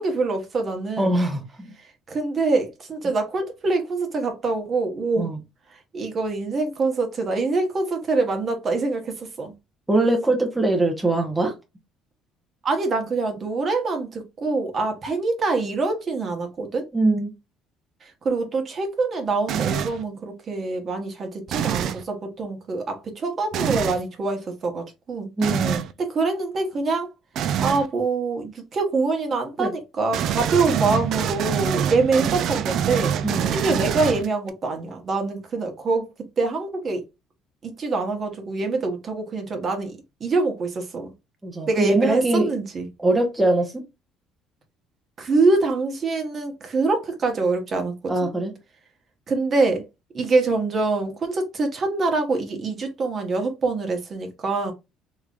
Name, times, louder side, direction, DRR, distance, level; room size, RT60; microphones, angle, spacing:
voice 1, 0.0-1.2 1.8-5.3 5.7-9.5 12.6-16.9 18.0-25.3 26.0-27.1 27.6-33.2 33.5-36.1 36.4-37.0 37.6-41.1 41.7-42.9 45.2-48.3 49.3-49.8 50.1-54.7, right 3 dB, 40° right, 1.1 m, -25 dB
voice 2, 1.0-1.7 5.2-5.4 9.9-11.5 16.9-17.3 25.4-25.9 29.6-29.7 33.2-33.6 41.4-42.5 43.0-43.8 48.1-48.5, right 2 dB, 10° right, 0.9 m, -22 dB
sound 1, 19.5-20.0 21.5-22.0 23.5-24.0 25.4-25.9 27.4-27.9 30.1-34.5, right 9 dB, 60° right, 0.4 m, -25 dB
3.7 x 3.1 x 2.5 m
cardioid pair, 110°, 0 cm